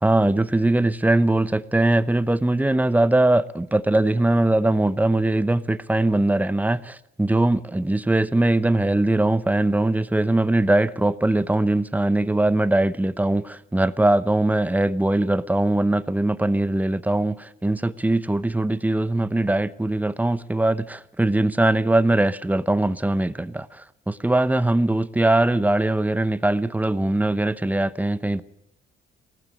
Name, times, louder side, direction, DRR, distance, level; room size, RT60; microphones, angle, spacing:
voice 1, 0.0-28.4, right 2 dB, 10° right, 0.9 m, -21 dB
19.0 x 14.5 x 9.5 m
cardioid pair, 90°, 20 cm